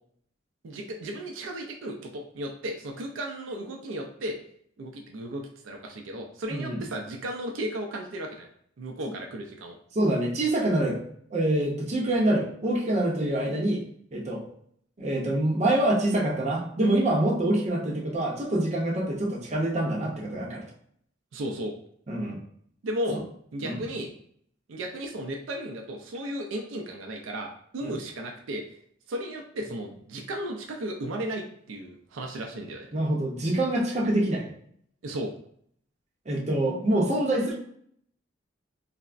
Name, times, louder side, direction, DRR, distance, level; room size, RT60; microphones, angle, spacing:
voice 1, 0.6-4.4 4.8-8.5 8.8-9.8 21.3-21.7 22.8-23.2 23.5-24.1 24.7-28.6 29.1-32.9 35.0-35.3, right 1 dB, 80° right, 2 dB, 0.4 m, -35 dB
voice 2, 9.9-11.0 11.3-13.8 14.1-14.4 15.0-20.6 22.1-22.3 23.6-23.8 27.8-27.9 32.9-34.5 36.3-37.5, right 1 dB, 35° right, -3 dB, 0.6 m, -25 dB
3.2 x 2.0 x 2.4 m, 0.66 s
head